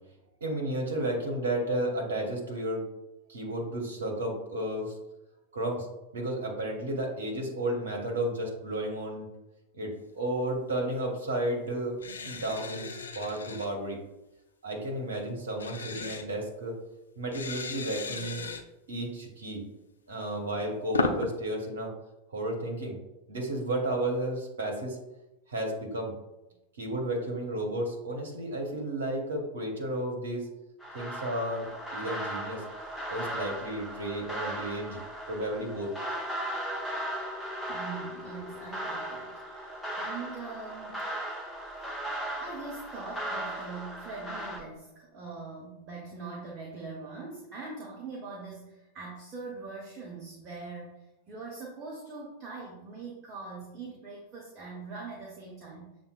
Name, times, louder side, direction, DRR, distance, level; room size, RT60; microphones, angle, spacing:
voice 1, 0.4-2.8 3.3-4.9 5.5-5.9 6.1-9.3 9.7-12.0 12.2-14.0 14.6-16.8 17.2-18.4 18.9-19.6 20.1-21.9 22.3-23.0 23.3-25.0 25.5-26.1 26.8-30.5 30.9-32.6 33.1-35.0 35.3-35.9, right 1 dB, 65° right, 0 dB, 0.9 m, -32 dB
sound 1, 12.0-13.7 15.6-16.3 17.3-18.6 20.3-21.3, left 4 dB, 70° left, 0.4 m, -35 dB
sound 2, 30.8-44.6, right 1 dB, 10° left, 0.9 m, -37 dB
voice 2, 37.7-41.1 42.0-42.1 42.4-56.0, right 4 dB, 30° right, -3 dB, 0.9 m, -42 dB
6.9 x 2.5 x 2.3 m, 0.98 s
figure-of-eight pair, 90°, 0 cm